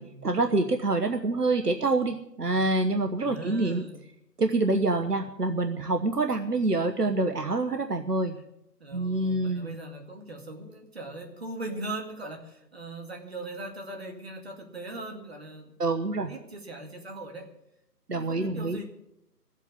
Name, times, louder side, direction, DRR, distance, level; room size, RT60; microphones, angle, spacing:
voice 1, 0.0-3.8 4.4-8.4 8.9-9.7 15.8-16.3 18.1-18.8, right 2 dB, 70° right, 6 dB, 1.2 m, -26 dB
voice 2, 3.2-4.0 8.8-15.8 16.0-17.5 18.1-18.8, right 2 dB, 40° right, 3 dB, 2.3 m, -40 dB
14.0 x 8.2 x 9.9 m, 0.82 s
figure-of-eight pair, 165°, 49 cm